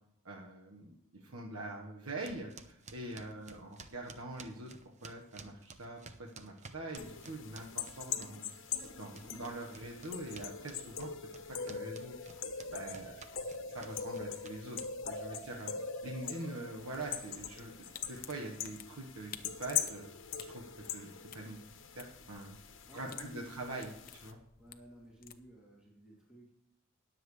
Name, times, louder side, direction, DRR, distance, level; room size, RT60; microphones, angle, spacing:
voice 1, 0.2-4.7 5.0-8.5 8.9-11.1 11.5-12.1 12.7-13.2 13.7-19.3 19.6-20.1 20.5-21.6 22.0-22.6 22.9-23.9 24.2-24.4, right 2 dB, 90° right, 0 dB, 1.4 m, -44 dB
sound 1, 2.2-8.6 8.8-15.2, right 4 dB, 35° right, 0.8 m, -53 dB
sound 2, 7.0-24.3, left 7 dB, 65° left, 1.3 m, -42 dB
sound 3, 16.7-25.4, left 9 dB, 45° left, 0.8 m, -55 dB
voice 2, 22.8-24.0 24.6-26.5, equal, 5° right, -6 dB, 2.8 m, -54 dB
20.5 x 7.7 x 3.3 m, 0.82 s
head